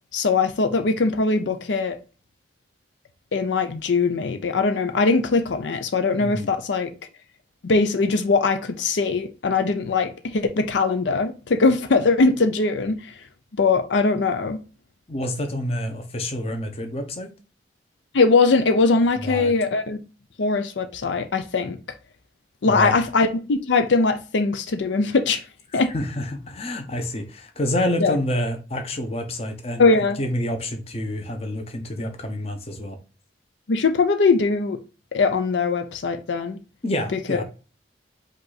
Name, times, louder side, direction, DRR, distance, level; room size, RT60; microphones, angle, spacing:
voice 1, 0.1-2.0 3.3-6.9 7.6-13.2 13.5-14.6 18.1-20.0 20.4-21.8 22.6-25.4 25.7-25.9 28.0-28.2 29.8-30.2 33.7-34.8 35.1-36.6 37.1-37.4, left 4 dB, 90° left, 0.5 m, -21 dB
voice 2, 15.1-17.3 19.2-19.5 22.7-22.9 25.9-29.9 30.2-33.0 36.8-37.4, left 1 dB, 35° left, 0.8 m, -28 dB
5.2 x 2.5 x 4.0 m
head